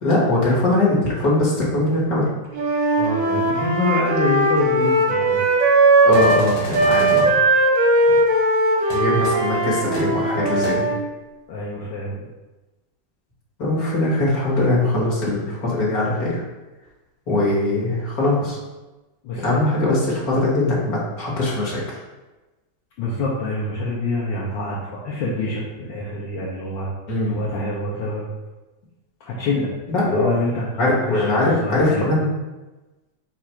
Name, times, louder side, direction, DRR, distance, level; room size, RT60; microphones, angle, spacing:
voice 1, 0.0-2.3 6.0-7.3 8.9-10.9 13.6-16.4 17.3-18.6 19.4-22.0 27.1-27.4 29.9-30.3 30.8-32.3, left 2 dB, 50° left, -5 dB, 1.7 m, -21 dB
Wind instrument woodwind instrument, 2.5-6.4 6.7-11.0, right 2 dB, 60° right, 0.9 m, -18 dB
voice 2, 3.0-5.4 8.1-8.2 11.5-12.3 19.2-19.6 23.0-26.9 27.3-28.3 29.2-29.7 30.0-32.0, left 2 dB, 70° left, -6 dB, 1.4 m, -26 dB
sound 1, 6.1-7.3 8.9-9.0 9.2-9.3 9.9-10.0 10.6-10.7, left 2 dB, 85° left, 2.1 m, -32 dB
4.7 x 2.5 x 4.3 m, 1.1 s
omnidirectional pair, 2.2 m